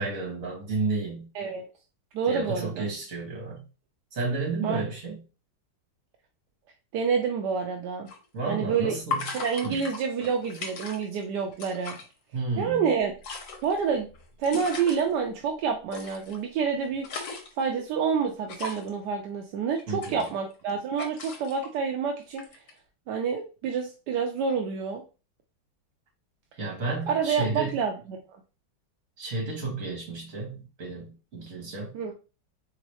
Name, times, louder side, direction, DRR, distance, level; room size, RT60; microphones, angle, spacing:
voice 1, 0.0-1.3 2.3-3.6 4.1-5.2 8.3-9.3 9.6-9.8 12.3-12.9 19.9-20.3 26.6-27.8 29.2-32.1, right 3 dB, 45° right, 1.9 m, -32 dB
voice 2, 2.1-2.8 4.6-4.8 6.9-8.1 8.5-8.9 9.3-12.0 12.6-13.1 13.6-14.1 14.4-17.1 17.6-22.4 23.1-25.0 27.1-28.2 31.9-32.1, right 6 dB, 70° right, 1.1 m, -28 dB
sound 1, 8.1-8.2 9.1-11.2 11.5-12.0 13.0-15.0 15.9-16.4 16.8-17.7 18.5-18.9 19.8-20.7 21.0-21.7 22.4-22.7, left 4 dB, 75° left, 1.6 m, -37 dB
4.0 x 3.6 x 3.0 m
omnidirectional pair, 2.1 m